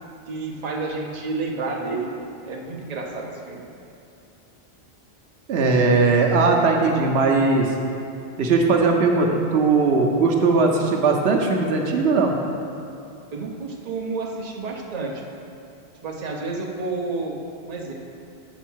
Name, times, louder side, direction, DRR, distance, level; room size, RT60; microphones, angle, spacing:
voice 1, 0.3-2.1 2.4-3.7 13.3-15.2 16.0-17.4 17.7-17.9, right 3 dB, 40° right, 0 dB, 0.8 m, -30 dB
voice 2, 5.5-7.7 8.4-12.3, right 3 dB, 75° right, 1 dB, 1.0 m, -19 dB
7.1 x 4.6 x 6.1 m, 2.6 s
omnidirectional pair, 1.1 m